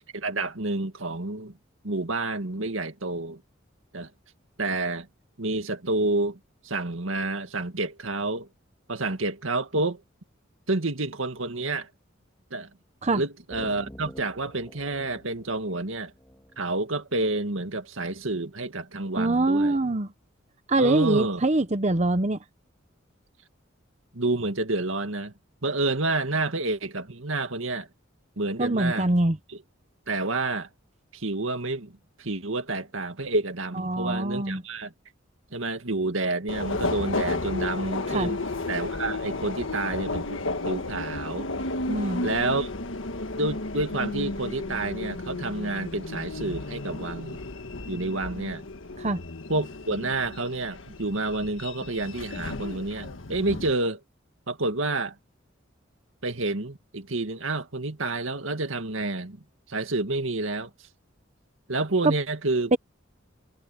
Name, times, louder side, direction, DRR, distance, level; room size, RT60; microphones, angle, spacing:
voice 1, 0.1-1.5 1.8-3.4 3.9-4.1 4.6-5.1 5.4-6.4 6.6-8.5 8.9-10.0 10.7-11.9 12.5-12.7 13.1-16.1 16.6-19.8 20.8-21.4 24.1-25.3 25.6-27.9 28.4-29.1 30.1-30.7 31.1-34.9 35.5-38.4 38.7-41.5 42.2-42.7 43.4-47.4 47.9-48.6 49.5-54.0 54.5-55.1 56.2-59.4 59.7-60.7 61.7-62.8, right 2 dB, 85° right, 2.1 m, -29 dB
sound 1, 13.5-17.1, equal, 15° left, 2.7 m, -47 dB
voice 2, 19.1-20.1 20.7-22.4 28.6-29.4 33.7-34.6 38.1-38.3 41.9-42.3 49.0-49.2 62.0-62.1 62.7-62.8, right 2 dB, 35° right, 0.9 m, -24 dB
Subway metro underground, 36.5-53.7, left 2 dB, 75° left, 1.6 m, -33 dB
head